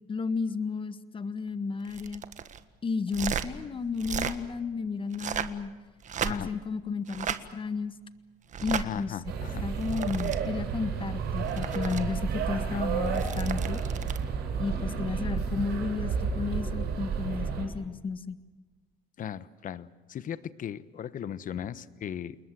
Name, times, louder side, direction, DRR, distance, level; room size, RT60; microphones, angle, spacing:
voice 1, 0.1-2.2 2.8-5.7 6.2-7.9 8.6-9.3 9.6-13.8 14.6-18.4, left 4 dB, 30° left, 13 dB, 1.5 m, -33 dB
sound 1, 1.8-2.6 3.1-3.5 4.0-4.4 5.1-5.6 6.0-6.6 7.1-7.4 8.5-8.9 9.7-10.4 11.3-12.0 13.1-14.3 16.1-16.3, right 8 dB, 45° right, 1.6 m, -35 dB
voice 2, 8.8-9.6 12.7-12.8 19.2-22.4, left 9 dB, 50° left, 16 dB, 1.2 m, -37 dB
sound 2, 9.3-17.7, right 6 dB, 75° right, 7.3 m, -31 dB
28.5 x 20.5 x 7.6 m, 1.3 s
cardioid pair, 110°, 17 cm